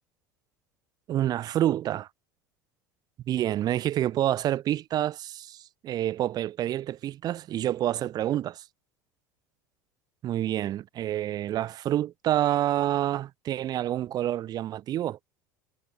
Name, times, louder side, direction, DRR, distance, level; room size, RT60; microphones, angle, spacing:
voice 1, 1.1-2.1 3.3-8.6 10.2-15.2, right 12 dB, 40° right, 2.4 m, -28 dB
figure-of-eight pair, 70°, 10 cm